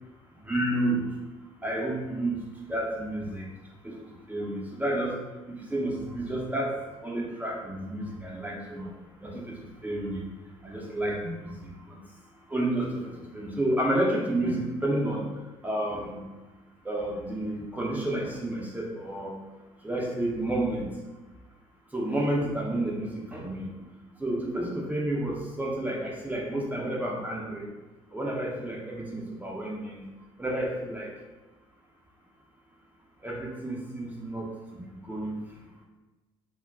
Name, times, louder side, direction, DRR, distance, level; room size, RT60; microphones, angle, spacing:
voice 1, 0.4-1.0 1.6-2.4 2.7-3.5 3.8-4.0 4.3-5.2 5.5-8.9 9.2-10.3 10.6-12.0 12.5-15.3 15.6-16.2 16.8-19.3 19.8-20.9 21.9-23.7 24.2-27.7 28.1-30.0 30.4-31.1 33.2-35.4, right 1 dB, 10° right, -3 dB, 0.6 m, -30 dB
2.2 x 2.1 x 3.6 m, 1.1 s
hypercardioid pair, 55°, 15 cm